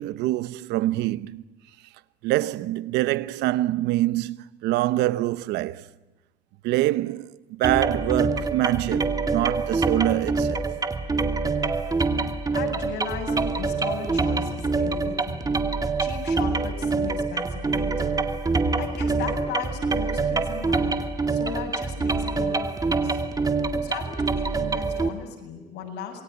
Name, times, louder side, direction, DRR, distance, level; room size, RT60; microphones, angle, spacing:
voice 1, 0.0-1.4 2.2-5.9 6.6-10.7, right 16 dB, 90° right, 1.0 m, -25 dB
sound 1, 7.6-25.1, right 3 dB, 20° right, 2.4 m, -25 dB
voice 2, 12.5-15.5 16.0-18.2 18.8-21.0 21.3-23.2 23.7-26.2, left 6 dB, 80° left, 7.6 m, -36 dB
28.0 x 22.0 x 9.4 m
cardioid pair, 110°, 17 cm